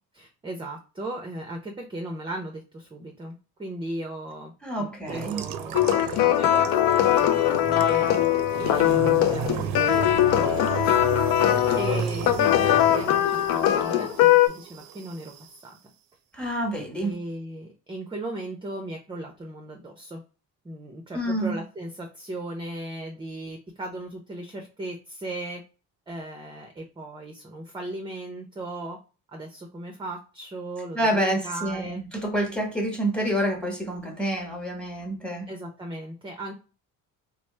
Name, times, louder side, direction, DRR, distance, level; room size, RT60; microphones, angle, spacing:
voice 1, 0.1-4.5 4.8-8.2 8.6-15.3 15.6-15.8 16.9-20.2 20.6-25.6 26.1-29.0 29.3-32.0 35.5-36.5, right 1 dB, 15° right, 2 dB, 0.6 m, -37 dB
voice 2, 4.6-5.4 16.4-17.2 21.1-21.6 30.9-35.5, right 1 dB, 5° left, 2 dB, 1.2 m, -28 dB
sound 1, 5.1-15.5, right 8 dB, 65° right, 0.5 m, -33 dB
sound 2, 5.7-14.5, left 13 dB, 65° left, 0.5 m, -21 dB
3.1 x 2.0 x 3.2 m, 0.35 s
cardioid pair, 95°, 36 cm